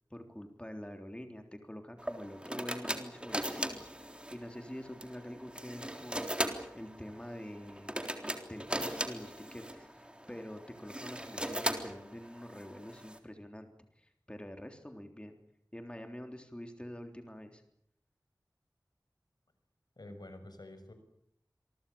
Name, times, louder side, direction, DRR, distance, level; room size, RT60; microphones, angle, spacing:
voice 1, 0.1-13.7 14.0-15.4 15.7-17.6, equal, 15° left, 5 dB, 3.6 m, -46 dB
sound 1, 2.0-13.2, right 1 dB, 15° right, 3.8 m, -39 dB
voice 2, 20.0-20.9, left 1 dB, 65° left, 8 dB, 6.2 m, -48 dB
27.5 x 23.5 x 7.1 m, 0.74 s
wide cardioid pair, 50°, 7 cm